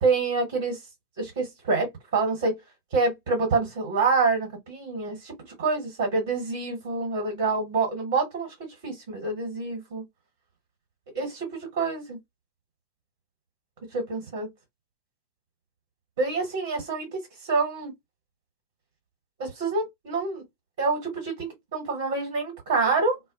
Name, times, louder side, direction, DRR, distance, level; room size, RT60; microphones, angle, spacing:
voice 1, 0.0-0.8 1.2-2.5 2.9-10.0 11.1-12.2 13.9-14.5 16.2-17.9 19.4-20.4 20.8-23.2, right 4 dB, 55° right, 1.2 m, -27 dB
2.1 x 2.1 x 2.7 m
figure-of-eight pair, 90°, 0 cm